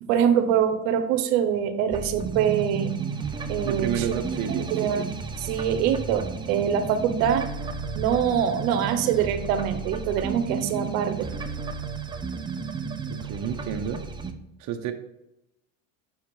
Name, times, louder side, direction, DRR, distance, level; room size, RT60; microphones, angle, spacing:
voice 1, 0.0-2.9 3.5-4.1 4.7-7.5 7.9-11.3, right 8 dB, 80° right, 8 dB, 0.8 m, -24 dB
sound 1, 1.9-14.3, right 5 dB, 10° right, 0.4 m, -33 dB
voice 2, 3.6-4.7 13.1-14.0 14.6-14.9, right 8 dB, 45° right, 5 dB, 0.7 m, -30 dB
6.3 x 2.9 x 5.1 m, 0.89 s
supercardioid pair, 115°, 39 cm